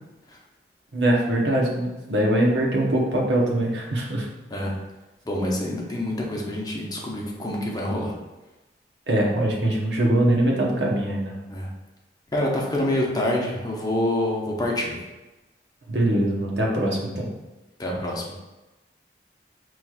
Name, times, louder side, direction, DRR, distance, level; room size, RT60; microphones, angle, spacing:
voice 1, 0.9-4.3 9.1-11.3 15.9-17.3, right 1 dB, 75° right, -1 dB, 0.9 m, -22 dB
voice 2, 5.3-8.1 11.5-11.7 12.3-15.0 17.8-18.3, left 1 dB, 20° left, -2 dB, 0.7 m, -26 dB
5.8 x 3.1 x 2.3 m, 1.1 s
head